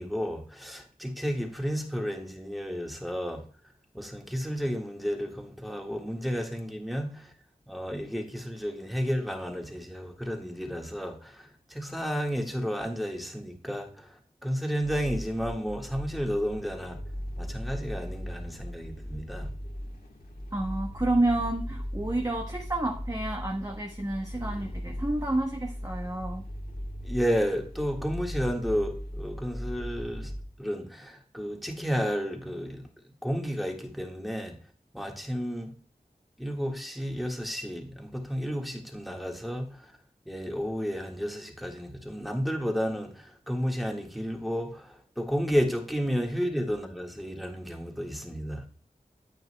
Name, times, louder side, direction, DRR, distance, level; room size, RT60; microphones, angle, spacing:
voice 1, 0.0-3.4 3.9-7.3 7.7-14.1 14.4-17.0 17.4-19.5 27.0-30.3 30.6-32.8 33.2-34.6 34.9-35.7 36.4-39.9 40.2-48.6, equal, ahead, 1.7 m, -32 dB
sound 1, 14.8-30.4, equal, 85° left, 1.3 m, -38 dB
voice 2, 20.5-26.4, right 1 dB, 25° right, 1.0 m, -29 dB
9.3 x 9.0 x 2.2 m
wide cardioid pair, 60°, 15 cm